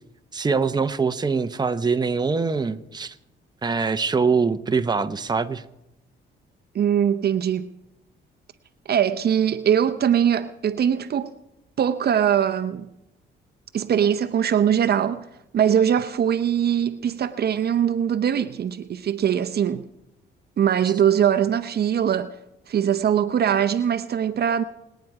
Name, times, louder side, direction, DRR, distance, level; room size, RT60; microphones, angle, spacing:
voice 1, 0.3-3.1 3.6-5.6, right 4 dB, 20° right, 0.9 m, -23 dB
voice 2, 6.7-7.7 8.9-11.3 11.8-12.9 13.7-15.3 15.5-19.9 20.6-22.3 22.7-24.6, right 9 dB, 55° right, 0.7 m, -21 dB
28.0 x 9.3 x 4.8 m
cardioid pair, 90°, 20 cm